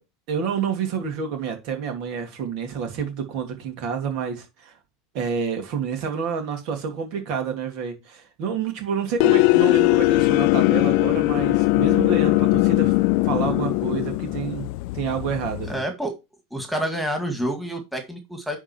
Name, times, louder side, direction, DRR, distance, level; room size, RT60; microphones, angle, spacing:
voice 1, 0.3-4.7 5.1-12.9 13.2-14.7 14.9-15.8, right 6 dB, 60° right, 2.7 m, -28 dB
sound 1, 9.2-15.8, left 21 dB, 65° left, 0.4 m, -20 dB
voice 2, 15.7-16.2 16.5-18.6, equal, ahead, 2.1 m, -28 dB
9.8 x 3.9 x 4.5 m
hypercardioid pair, 95°, 0 cm